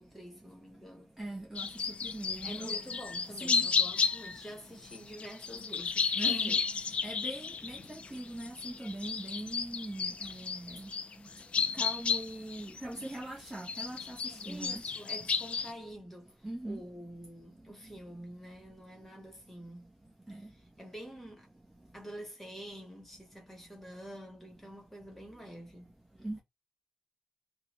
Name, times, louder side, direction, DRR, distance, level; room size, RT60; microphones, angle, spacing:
voice 1, 0.0-1.1 2.4-6.6 14.4-19.9 20.3-21.5 21.9-26.0, equal, 10° left, 1.2 m, -47 dB
voice 2, 1.2-1.7 2.0-2.8 3.4-3.7 6.2-6.6 7.0-10.9 11.8-14.8 16.4-16.8 20.3-20.4 26.2-26.4, right 1 dB, 10° right, 0.8 m, -41 dB
sound 1, 1.6-4.5 4.9-13.2 13.5-15.7, left 5 dB, 55° left, 0.4 m, -33 dB
3.5 x 2.2 x 3.1 m
wide cardioid pair, 145°, 2 cm